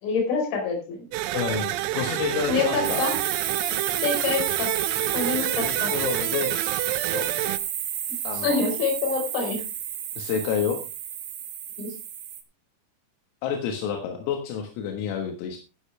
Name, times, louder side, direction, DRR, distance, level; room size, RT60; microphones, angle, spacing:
voice 1, 0.0-1.1 2.5-3.1 4.0-4.7 5.1-5.9 8.3-9.6 11.8-11.9, left 4 dB, 60° left, 3 dB, 6.7 m, -26 dB
sound 1, 1.1-7.6, right 15 dB, 85° right, 3.5 m, -29 dB
voice 2, 1.3-3.0 5.5-6.7 7.1-7.3 8.3-8.6 10.2-10.8 13.4-15.6, left 7 dB, 85° left, 4 dB, 4.3 m, -29 dB
sound 2, 2.8-12.4, right 10 dB, 65° right, 2.3 m, -30 dB
15.5 x 10.5 x 3.3 m, 0.29 s
omnidirectional pair, 6.0 m